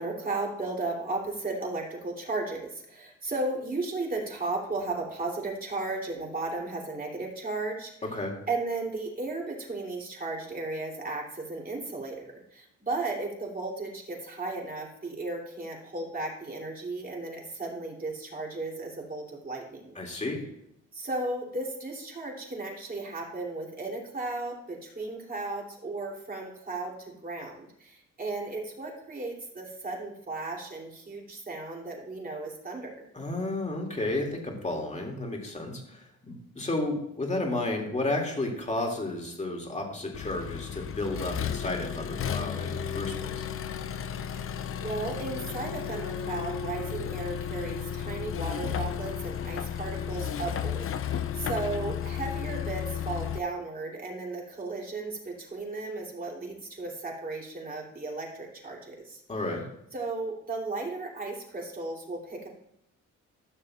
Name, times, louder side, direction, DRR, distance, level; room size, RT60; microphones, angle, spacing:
voice 1, 0.0-7.9 8.5-20.0 20.9-33.0 44.3-44.5 44.8-59.2 59.9-62.5, right 3 dB, 30° right, -2 dB, 2.9 m, -35 dB
voice 2, 19.9-20.4 33.1-43.3 59.3-59.6, left 2 dB, 25° left, 1 dB, 2.4 m, -32 dB
Accelerating revving vroom, 40.1-53.4, left 8 dB, 45° left, 0.6 m, -33 dB
13.5 x 6.6 x 2.4 m, 0.78 s
cardioid pair, 90°, 30 cm